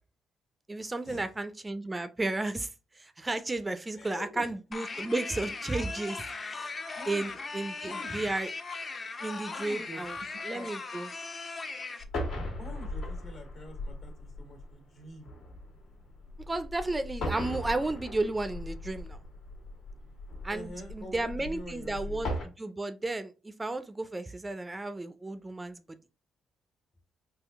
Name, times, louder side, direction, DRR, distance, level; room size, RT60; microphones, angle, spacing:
voice 1, 0.7-6.7 7.1-8.5 9.2-10.2 10.4-11.1 16.5-19.2 20.4-26.0, right 2 dB, 20° right, 0.4 m, -33 dB
voice 2, 3.9-4.5 6.9-7.4 7.8-8.3 9.5-10.7 12.5-15.3 20.5-22.3, equal, 60° left, 1.5 m, -46 dB
sound 1, 4.7-12.0, left 3 dB, 40° left, 0.6 m, -39 dB
sound 2, 12.0-22.4, left 1 dB, 80° left, 1.6 m, -38 dB
3.6 x 2.7 x 3.5 m
cardioid pair, 90°, 0 cm